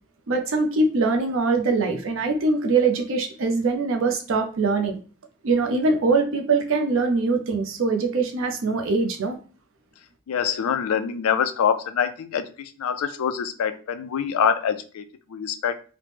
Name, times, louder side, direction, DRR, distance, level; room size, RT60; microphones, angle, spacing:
voice 1, 0.3-5.0 5.4-9.4, right 3 dB, 65° right, 0.5 m, -22 dB
voice 2, 10.3-15.8, left 7 dB, 85° left, 0.3 m, -25 dB
3.0 x 2.0 x 3.2 m
head